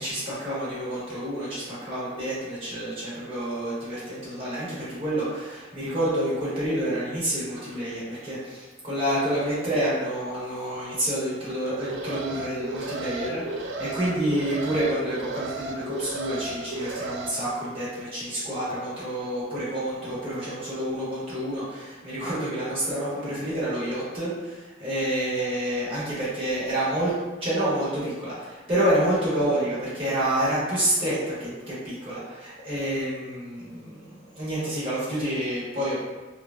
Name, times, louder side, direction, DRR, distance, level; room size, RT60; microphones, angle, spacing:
voice 1, 0.0-27.1 27.4-36.1, right 1 dB, 35° right, -10 dB, 1.2 m, -28 dB
Alarm, 11.6-17.3, right 2 dB, 85° right, 0.3 m, -34 dB
3.2 x 2.3 x 2.4 m, 1.2 s
head